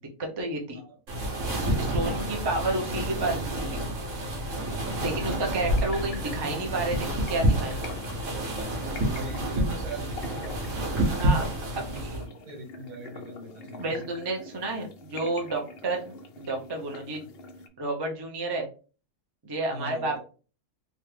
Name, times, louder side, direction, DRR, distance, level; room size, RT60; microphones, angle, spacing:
voice 1, 0.2-0.8 1.8-3.8 5.0-7.8 11.2-11.5 11.7-12.2 13.8-17.3 17.8-18.7 19.4-20.2, right 2 dB, 40° right, 1 dB, 0.3 m, -31 dB
sound 1, 1.1-12.2, right 1 dB, 60° right, 1.2 m, -29 dB
sound 2, 5.0-17.7, left 2 dB, 85° left, 0.5 m, -44 dB
voice 2, 9.0-10.8 11.7-12.1 12.4-14.0 19.7-20.2, right 2 dB, 85° right, 1 dB, 1.7 m, -41 dB
3.2 x 2.4 x 3.2 m, 0.36 s
omnidirectional pair, 1.6 m